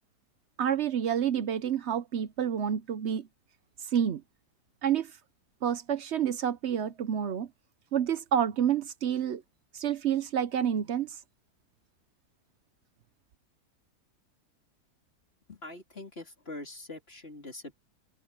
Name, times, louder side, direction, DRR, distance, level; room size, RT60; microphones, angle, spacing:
voice 1, 0.6-3.3 3.9-4.2 4.8-5.1 5.6-7.5 7.9-9.4 9.7-11.2, right 9 dB, 55° right, 0.8 m, -28 dB
voice 2, 15.5-17.8, left 2 dB, 40° left, 3.9 m, -43 dB
open air
omnidirectional pair, 1.7 m